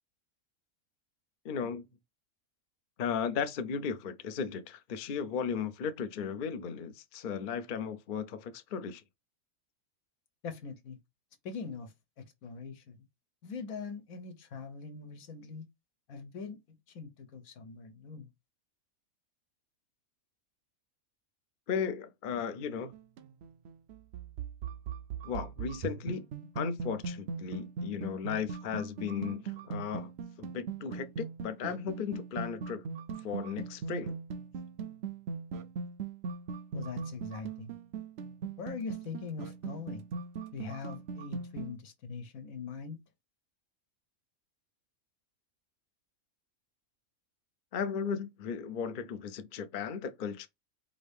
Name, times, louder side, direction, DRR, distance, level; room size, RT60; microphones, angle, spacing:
voice 1, 1.4-1.8 3.0-9.0 21.7-22.9 25.2-26.3 26.6-30.1 30.4-32.8 33.2-34.2 47.7-50.5, left 6 dB, 55° left, 0.6 m, -35 dB
voice 2, 10.4-11.0 11.4-13.0 13.4-15.7 16.1-16.6 16.9-18.3 36.7-37.7 38.6-40.0 40.5-43.0, left 5 dB, 75° left, 1.3 m, -42 dB
sound 1, 22.8-41.8, right 5 dB, 60° right, 0.7 m, -40 dB
4.9 x 2.7 x 3.4 m
omnidirectional pair, 1.5 m